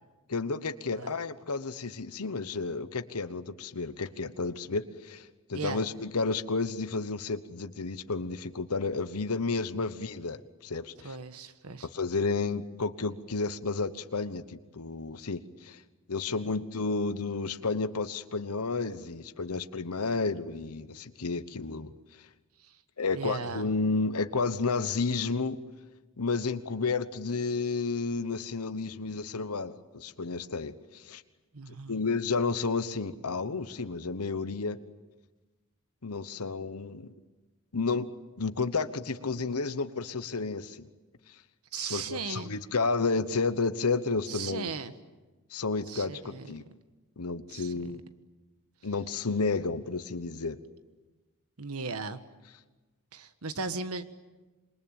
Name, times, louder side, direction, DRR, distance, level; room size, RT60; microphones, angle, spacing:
voice 1, 0.3-11.1 11.9-15.8 16.1-21.9 23.0-25.6 26.2-31.2 31.9-34.8 36.0-37.1 37.7-38.1 38.4-40.9 41.7-44.7 45.5-46.6 47.2-48.0 48.8-50.6, left 4 dB, 85° left, 11 dB, 1.1 m, -31 dB
voice 2, 11.0-11.9 22.6-22.8 23.1-23.7 31.5-32.0 41.7-42.5 44.3-44.9 45.9-46.5 47.5-47.9 51.6-52.2 53.1-54.1, right 4 dB, 80° right, 11 dB, 1.4 m, -37 dB
27.5 x 22.5 x 9.0 m, 1.2 s
head